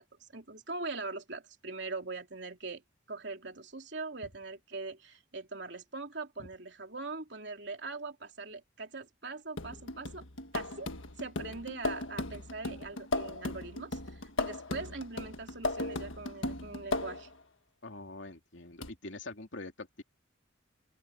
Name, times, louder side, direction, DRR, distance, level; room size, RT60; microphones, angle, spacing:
voice 1, 0.0-2.8 3.1-10.2 10.5-10.9 11.2-17.3, right 3 dB, 60° right, 3.1 m, -42 dB
sound 1, 9.6-17.4 18.8-18.9, left 2 dB, 85° left, 1.6 m, -37 dB
voice 2, 17.8-20.0, left 2 dB, 70° left, 2.8 m, -44 dB
open air
head